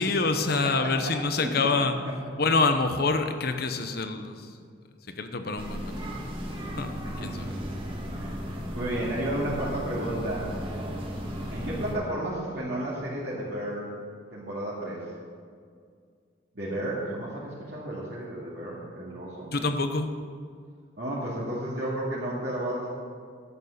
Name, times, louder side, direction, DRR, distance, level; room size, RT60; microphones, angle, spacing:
voice 1, 0.0-1.9 2.4-4.5 5.2-6.5 6.8-6.9 7.2-7.4 19.5-20.1, left 3 dB, 55° left, 8 dB, 0.9 m, -26 dB
voice 2, 0.8-1.1 1.4-1.7 2.1-2.2 7.0-7.3 8.0-10.6 11.5-13.9 14.3-15.0 16.5-19.5 21.0-22.9, right 1 dB, 60° right, -9 dB, 2.4 m, -32 dB
sound 1, 5.6-12.0, equal, 25° right, 1.6 m, -35 dB
11.0 x 8.1 x 6.6 m, 2.1 s
head